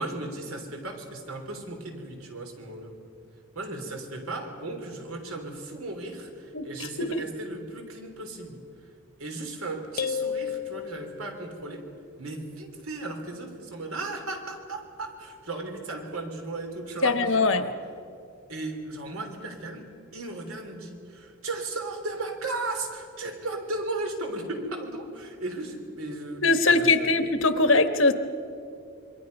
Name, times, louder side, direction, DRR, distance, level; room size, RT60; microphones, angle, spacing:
voice 1, 0.0-2.9 3.5-8.9 9.2-11.9 12.2-17.7 18.5-27.1, right 2 dB, 80° right, 3 dB, 3.4 m, -36 dB
voice 2, 6.5-7.2 17.0-17.7 26.4-28.1, left 3 dB, 65° left, 9 dB, 1.2 m, -22 dB
sound 1, 10.0-11.5, left 7 dB, 45° left, 0.6 m, -32 dB
27.0 x 23.0 x 5.4 m, 2.6 s
head